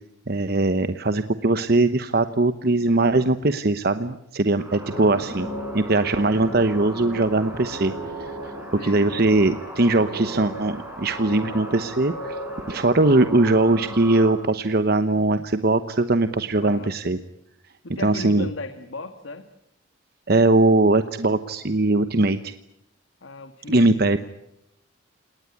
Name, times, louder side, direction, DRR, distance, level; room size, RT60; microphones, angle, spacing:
voice 1, 0.3-5.5 5.7-7.9 8.2-8.3 8.7-12.4 12.7-17.2 17.9-18.5 20.3-22.5 23.7-24.2, right 2 dB, 50° right, 10 dB, 0.9 m, -20 dB
sound 1, 4.6-14.4, right 1 dB, 10° right, 7.2 m, -35 dB
voice 2, 4.9-5.3 8.8-9.1 16.6-16.9 17.8-19.5 23.2-24.2, left 2 dB, 75° left, 9 dB, 1.6 m, -37 dB
29.5 x 19.0 x 9.7 m, 0.83 s
head